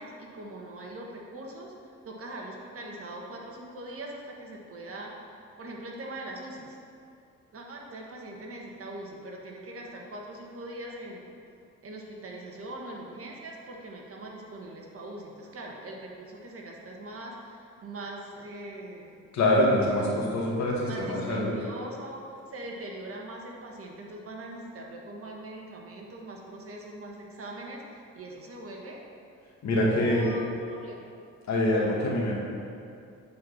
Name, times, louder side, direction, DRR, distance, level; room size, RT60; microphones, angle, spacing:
voice 1, 0.0-1.7 2.0-5.1 5.6-6.8 7.5-11.3 11.8-19.2 20.8-22.2 22.5-29.0 29.8-31.1, right 1 dB, 50° right, -1 dB, 1.5 m, -41 dB
voice 2, 19.3-21.5 29.6-30.3 31.5-32.4, left 1 dB, 65° left, -3 dB, 1.8 m, -25 dB
8.5 x 4.5 x 5.7 m, 2.5 s
cardioid pair, 90°, 30 cm